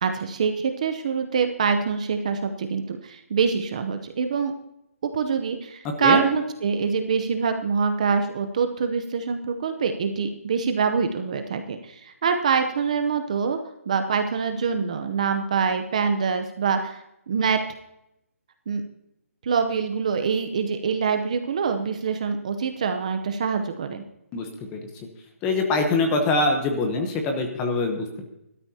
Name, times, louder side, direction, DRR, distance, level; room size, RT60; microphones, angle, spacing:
voice 1, 0.0-4.5 5.0-13.6 13.9-17.6 18.7-18.8 19.4-24.0, right 6 dB, 25° right, 7 dB, 0.7 m, -25 dB
voice 2, 24.3-24.8 25.4-28.2, left 3 dB, 10° left, 4 dB, 0.9 m, -24 dB
19.0 x 12.5 x 2.8 m, 0.84 s
hypercardioid pair, 175°, 8 cm